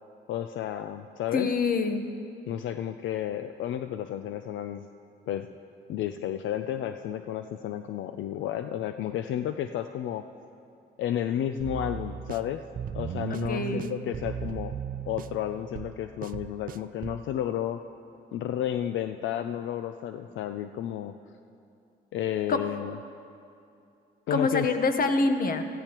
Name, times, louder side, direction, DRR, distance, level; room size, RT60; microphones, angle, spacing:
voice 1, 0.3-1.5 2.5-4.9 5.3-5.5 5.9-10.3 11.0-12.6 12.9-14.7 15.1-17.8 18.3-21.1 22.1-23.0 24.3-24.7, left 11 dB, 75° left, 9 dB, 0.5 m, -32 dB
voice 2, 1.3-2.1 13.3-13.9 22.5-22.6 24.3-25.6, left 3 dB, 45° left, 7 dB, 1.0 m, -26 dB
sound 1, 11.6-17.3, right 8 dB, 45° right, 0.4 m, -36 dB
17.0 x 15.0 x 3.0 m, 2.6 s
cardioid pair, 90°, 20 cm